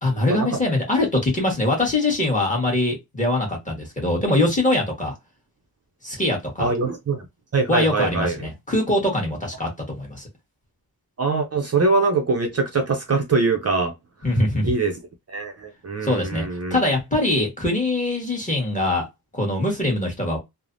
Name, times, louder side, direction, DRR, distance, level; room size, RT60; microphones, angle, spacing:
voice 1, 0.0-5.1 6.0-6.7 7.7-10.3 14.2-14.7 16.0-19.1 19.3-20.4, left 1 dB, 20° left, 1.2 m, -23 dB
voice 2, 6.6-7.3 7.5-8.5 11.2-13.9 14.6-15.0 15.3-16.8, right 3 dB, 40° right, 0.5 m, -23 dB
3.2 x 2.0 x 2.5 m
wide cardioid pair, 140°, 38 cm